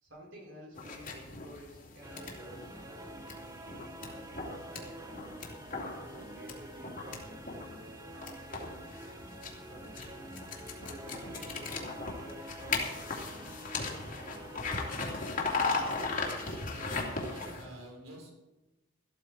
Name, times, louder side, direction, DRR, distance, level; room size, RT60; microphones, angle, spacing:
voice 1, 0.0-5.0 5.7-9.0 9.5-10.3 10.8-15.3, right 1 dB, 65° right, -2 dB, 4.3 m, -52 dB
sound 1, 0.7-17.7, left 3 dB, 40° left, 2.8 m, -38 dB
sound 2, 2.0-17.5, right 1 dB, 15° right, 0.8 m, -48 dB
voice 2, 16.5-18.3, right 1 dB, 85° right, 2 dB, 4.1 m, -49 dB
14.5 x 13.0 x 4.7 m, 1.0 s
head